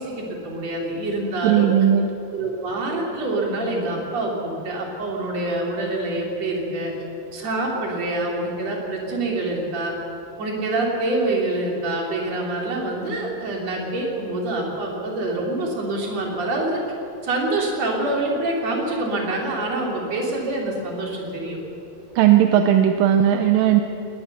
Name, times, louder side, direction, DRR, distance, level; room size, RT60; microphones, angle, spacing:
voice 1, 0.0-1.7 2.3-6.9 7.3-10.0 10.4-16.8 17.2-21.6, right 2 dB, 50° right, -1 dB, 4.2 m, -26 dB
voice 2, 1.4-2.1 22.2-23.8, right 10 dB, 80° right, 7 dB, 2.4 m, -16 dB
19.5 x 19.5 x 6.8 m, 2.9 s
omnidirectional pair, 3.9 m